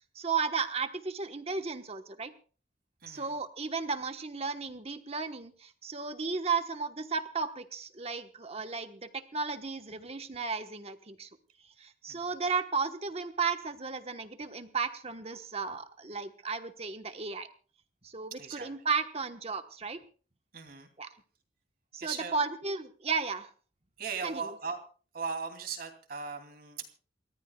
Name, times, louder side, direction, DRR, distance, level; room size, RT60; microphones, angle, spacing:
voice 1, 0.1-2.3 3.1-11.3 11.8-17.5 18.0-20.0 21.0-21.1 21.9-23.5 24.2-24.4, right 5 dB, 35° right, 8 dB, 1.2 m, -34 dB
voice 2, 3.0-3.3 12.1-12.3 18.4-18.7 20.5-20.9 22.0-22.4 24.0-24.8 25.1-26.9, right 5 dB, 55° right, 5 dB, 2.9 m, -38 dB
29.0 x 14.5 x 2.3 m, 0.40 s
head